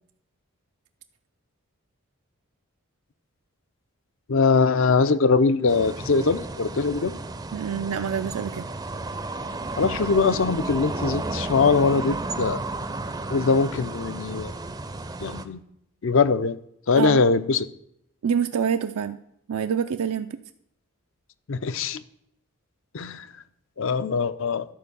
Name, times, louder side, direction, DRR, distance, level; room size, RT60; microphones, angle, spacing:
voice 1, 4.3-7.2 9.8-12.6 13.3-14.5 15.2-15.6 16.0-16.6 16.9-17.7 21.5-22.0 22.9-23.3 23.8-24.7, left 4 dB, 60° left, 14 dB, 0.5 m, -22 dB
sound 1, 5.7-15.4, right 2 dB, 15° right, 0.4 m, -33 dB
voice 2, 7.5-8.6 17.0-17.2 18.2-19.2 19.5-20.3, right 7 dB, 80° right, 8 dB, 0.4 m, -26 dB
12.0 x 4.5 x 6.8 m, 0.75 s
head